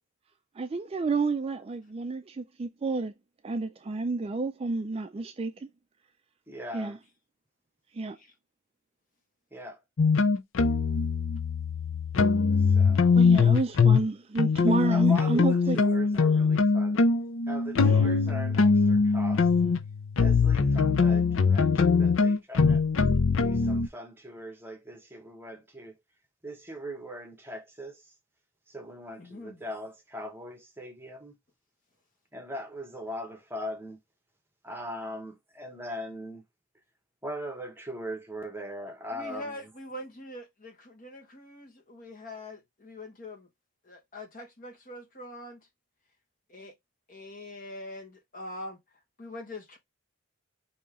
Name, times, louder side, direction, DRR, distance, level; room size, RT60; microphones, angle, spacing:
voice 1, 0.6-3.1 3.4-5.7 6.7-7.0 7.9-8.2 13.1-15.8 17.7-18.2, right 3 dB, 25° right, 0.3 m, -30 dB
voice 2, 6.5-7.0 9.5-9.8 12.5-13.5 14.7-17.1 17.4-19.5 20.2-22.8 23.4-25.9 26.4-28.0 28.7-31.3 32.3-34.0 34.6-36.4 37.2-39.5, equal, 10° right, 1.0 m, -40 dB
sound 1, 10.0-14.1 14.4-23.9, left 5 dB, 60° left, 0.5 m, -22 dB
voice 3, 29.2-29.6 39.1-43.5 43.8-45.7 46.5-46.7 47.1-48.8 49.2-49.8, left 1 dB, 40° left, 1.5 m, -43 dB
5.2 x 2.8 x 3.6 m
head